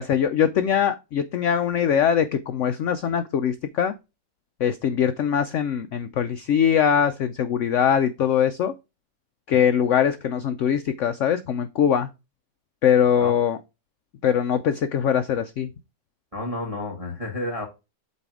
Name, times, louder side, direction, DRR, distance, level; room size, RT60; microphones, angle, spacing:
voice 1, 0.0-3.9 4.6-8.7 9.5-12.1 12.8-13.6 14.2-15.7, left 8 dB, 80° left, 0.6 m, -22 dB
voice 2, 16.3-17.7, left 1 dB, 20° right, 1.5 m, -30 dB
8.2 x 3.2 x 4.7 m
omnidirectional pair, 1.9 m